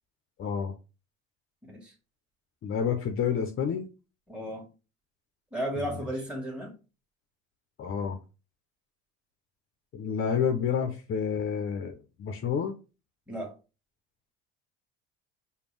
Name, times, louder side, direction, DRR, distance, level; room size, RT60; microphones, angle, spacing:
voice 1, 0.4-0.7 2.6-3.9 5.8-5.9 7.8-8.2 9.9-12.7, left 7 dB, 40° left, 6 dB, 0.7 m, -29 dB
voice 2, 1.6-1.9 4.3-4.7 5.5-6.7 13.3-13.5, right 1 dB, 5° right, -2 dB, 1.5 m, -34 dB
5.1 x 2.3 x 3.2 m, 0.32 s
hypercardioid pair, 75°, 32 cm